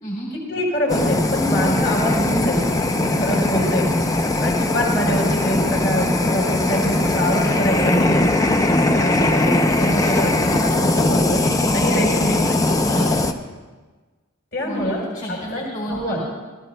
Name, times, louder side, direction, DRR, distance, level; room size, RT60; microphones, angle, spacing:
voice 1, 0.5-2.6 2.9-3.9 4.4-8.3 8.9-11.5 11.7-12.6 14.5-15.0 15.5-15.6 15.9-16.2, equal, 55° left, -2 dB, 4.3 m, -24 dB
Fire, 0.9-13.3, left 2 dB, 15° left, 0.5 m, -20 dB
voice 2, 11.6-12.2 12.8-13.2 14.6-16.2, equal, 40° left, -5 dB, 3.2 m, -30 dB
27.5 x 14.0 x 2.2 m, 1.3 s
head